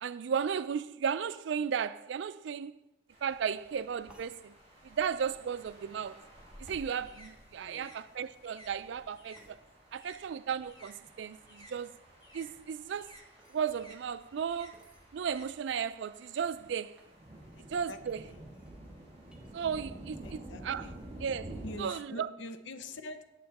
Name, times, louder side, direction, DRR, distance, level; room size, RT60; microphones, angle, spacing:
voice 1, 0.0-2.7 3.2-4.5 4.8-6.3 6.6-9.6 9.9-12.0 12.3-13.1 13.5-14.8 15.1-17.0 17.6-18.2 19.5-20.9 21.2-21.5 21.8-22.3, right 7 dB, 65° right, 0.3 m, -35 dB
sound 1, 3.1-21.8, right 1 dB, 30° right, 2.5 m, -51 dB
sound 2, 4.1-4.4 6.6-6.9 9.3-9.6 12.6-13.6 14.7-15.1 15.8-15.9 16.0-16.4 17.0-17.2 18.0-19.5 19.9-20.3 20.6-21.0, right 1 dB, 5° right, 1.1 m, -61 dB
sound 3, 6.3-11.0 11.3-16.1, equal, 20° left, 1.1 m, -58 dB
voice 2, 7.6-7.9 17.5-18.4 20.2-20.9 21.6-23.3, left 1 dB, 70° left, 0.7 m, -45 dB
8.7 x 6.7 x 4.1 m
head